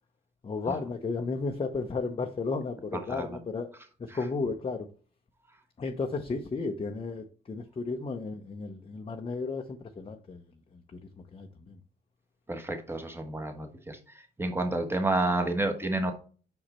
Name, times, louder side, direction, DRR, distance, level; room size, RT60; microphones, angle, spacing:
voice 1, 0.4-3.7 4.0-4.9 5.8-10.4 11.3-11.8, left 4 dB, 30° left, 0.7 m, -33 dB
voice 2, 12.5-14.0 14.4-16.1, right 2 dB, 10° right, 1.3 m, -30 dB
5.6 x 4.9 x 4.3 m
cardioid pair, 90°, 20 cm